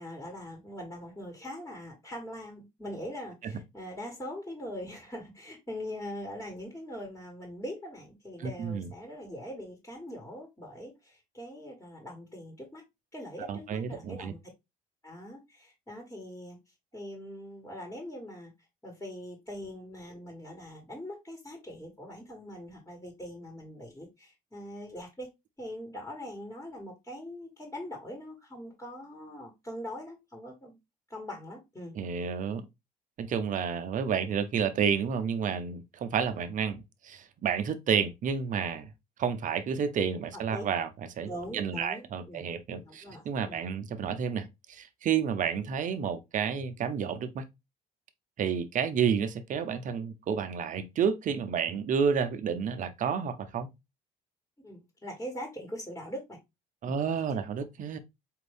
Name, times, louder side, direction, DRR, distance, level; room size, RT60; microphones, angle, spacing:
voice 1, 0.0-12.8 13.1-14.4 15.0-16.6 16.9-18.5 18.8-25.3 25.6-30.8 31.1-31.9 40.5-40.6 41.3-42.5 42.9-43.6 54.6-56.4, equal, 15° left, 1.4 m, -42 dB
voice 2, 8.4-8.9 13.5-14.3 31.9-32.6 33.2-38.9 39.2-40.9 41.2-47.5 48.4-53.7 56.8-58.0, right 7 dB, 50° right, 0.7 m, -30 dB
4.4 x 2.6 x 3.4 m
cardioid pair, 110°, 17 cm